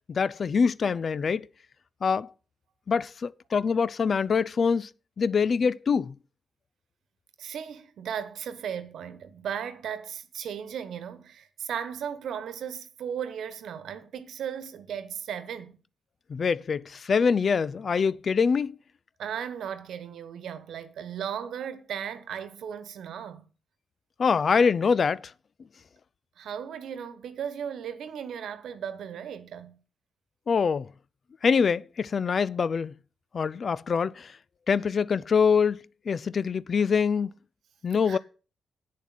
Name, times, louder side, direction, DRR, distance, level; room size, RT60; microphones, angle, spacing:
voice 1, 0.1-1.5 2.0-2.3 2.9-4.9 5.2-6.1 16.3-18.8 24.2-25.2 30.5-30.9 31.4-32.9 33.3-34.3 34.7-37.3 37.8-38.2, left 5 dB, 55° left, 0.5 m, -24 dB
voice 2, 7.4-15.8 19.2-23.4 26.4-29.8 38.1-38.2, right 8 dB, 70° right, 1.2 m, -36 dB
8.6 x 7.2 x 7.7 m
hypercardioid pair, 40°, 0 cm